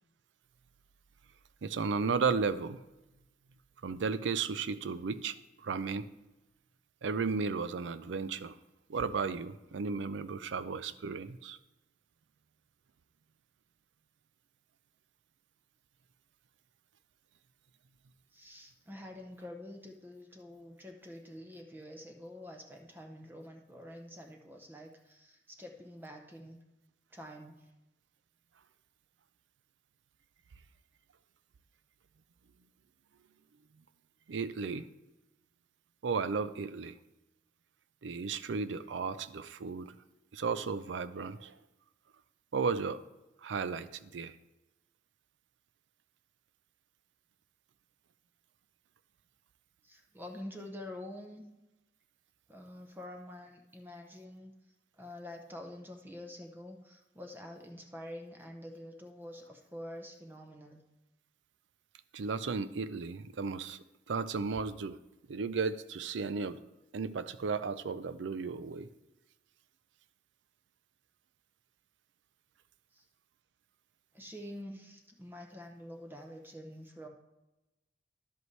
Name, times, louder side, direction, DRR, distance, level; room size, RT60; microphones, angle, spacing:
voice 1, 1.6-2.8 3.8-6.1 7.0-8.6 8.9-11.6 34.3-34.9 36.0-37.0 38.0-39.9 40.3-41.6 42.5-43.0 43.4-44.4 62.1-65.0 65.3-66.6 66.9-68.9, right 5 dB, 85° right, 14 dB, 0.5 m, -34 dB
voice 2, 18.3-26.6 27.1-27.7 49.8-51.4 52.5-54.5 55.0-60.8 72.9-73.1 74.1-77.1, left 1 dB, 10° right, 3 dB, 0.7 m, -47 dB
11.0 x 7.9 x 3.2 m, 1.0 s
head